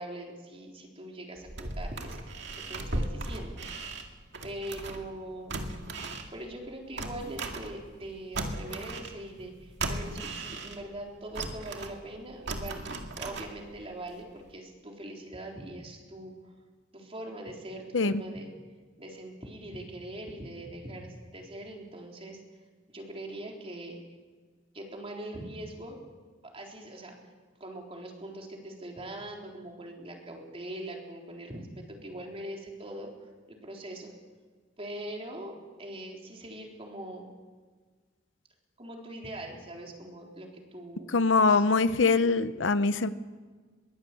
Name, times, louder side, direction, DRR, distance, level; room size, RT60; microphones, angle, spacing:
voice 1, 0.0-3.6 4.4-5.7 6.3-12.8 13.1-16.3 16.9-18.5 19.0-22.4 22.9-24.0 24.7-26.0 26.5-27.2 27.6-33.1 33.5-34.1 34.8-37.3 38.8-41.1 41.5-41.6, right 1 dB, 30° right, 0 dB, 4.0 m, -42 dB
sound 1, 1.4-5.1 5.5-8.1 8.3-11.0 11.3-13.9 14.2-14.3, right 2 dB, 65° right, 2.3 m, -37 dB
voice 2, 41.1-43.1, left 4 dB, 75° left, 13 dB, 0.8 m, -23 dB
22.5 x 18.0 x 8.6 m, 1.5 s
head